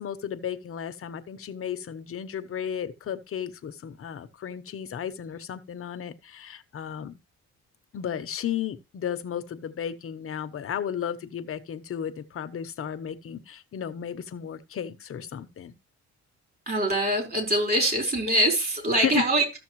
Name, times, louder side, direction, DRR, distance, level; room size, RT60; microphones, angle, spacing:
voice 1, 0.0-7.2 7.9-15.7 19.0-19.2, left 9 dB, 45° left, 0.9 m, -34 dB
voice 2, 16.7-19.6, right 1 dB, 30° right, 4.6 m, -24 dB
14.0 x 6.7 x 3.1 m
cardioid pair, 110°, 30 cm